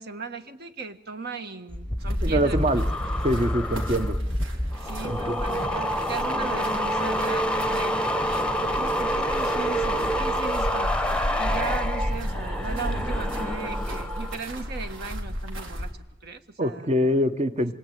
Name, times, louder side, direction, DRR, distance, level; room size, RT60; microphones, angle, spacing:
voice 1, 0.0-2.6 4.7-15.9 16.2-16.9, right 4 dB, 55° right, 7 dB, 1.6 m, -37 dB
sound 1, 1.7-14.4 14.7-15.1, equal, 5° left, 1.0 m, -27 dB
Walking gravel, 2.0-15.9, equal, 85° right, 3.5 m, -34 dB
voice 2, 2.2-2.8 3.2-4.2 5.0-5.4 16.6-17.7, equal, 35° right, 11 dB, 1.1 m, -24 dB
26.5 x 22.5 x 9.3 m, 0.97 s
head